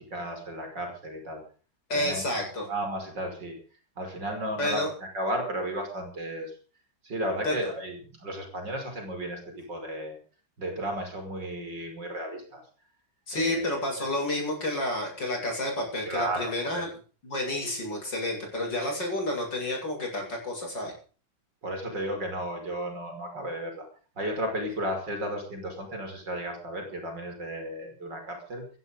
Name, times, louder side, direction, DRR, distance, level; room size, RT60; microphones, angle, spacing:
voice 1, 0.0-1.4 1.9-3.6 4.0-6.5 7.0-10.2 10.6-12.6 13.3-13.6 16.0-16.8 21.6-23.9 24.2-28.7, right 1 dB, 65° right, 4 dB, 6.2 m, -34 dB
voice 2, 1.9-2.6 4.6-4.9 7.5-7.6 13.3-16.9 17.2-20.9, left 1 dB, 65° left, 1 dB, 8.6 m, -30 dB
16.5 x 14.5 x 5.2 m, 0.39 s
omnidirectional pair, 2.1 m